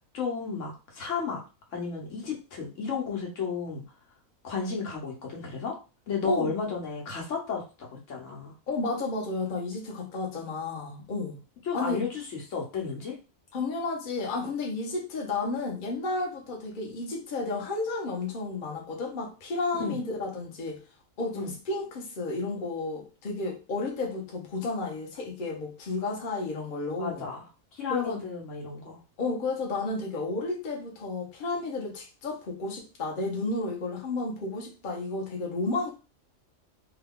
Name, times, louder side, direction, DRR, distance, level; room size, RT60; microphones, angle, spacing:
voice 1, 0.1-1.4 1.7-3.8 4.4-5.7 6.1-8.5 11.6-13.2 19.8-20.0 21.3-21.5 27.0-29.0, left 5 dB, 65° left, 0 dB, 1.2 m, -33 dB
voice 2, 8.7-11.4 11.7-12.0 13.5-20.8 21.2-27.2 27.9-28.2 29.2-35.9, left 3 dB, 45° left, -1 dB, 0.8 m, -32 dB
2.8 x 2.3 x 3.5 m, 0.32 s
omnidirectional pair, 1.4 m